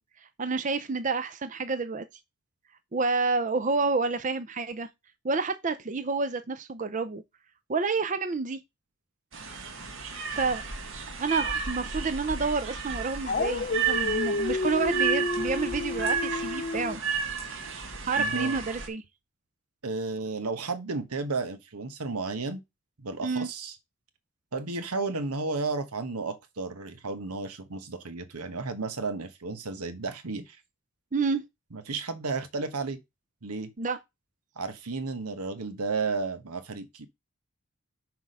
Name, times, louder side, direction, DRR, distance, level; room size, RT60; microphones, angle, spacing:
voice 1, 0.4-2.0 2.9-4.9 5.2-7.2 7.7-8.6 10.3-10.6 11.2-17.0 18.0-19.0 23.2-23.5 31.1-31.4 33.8-34.0, right 4 dB, 35° right, 0.5 m, -29 dB
sound 1, 9.3-18.9, right 5 dB, 60° right, 1.6 m, -32 dB
Dog, 13.3-17.0, left 3 dB, 40° left, 0.5 m, -30 dB
voice 2, 18.2-18.6 19.8-22.6 23.0-23.8 24.5-30.6 31.7-33.0 33.4-33.7 34.6-37.1, right 3 dB, 90° right, 1.2 m, -33 dB
5.9 x 4.8 x 5.4 m
head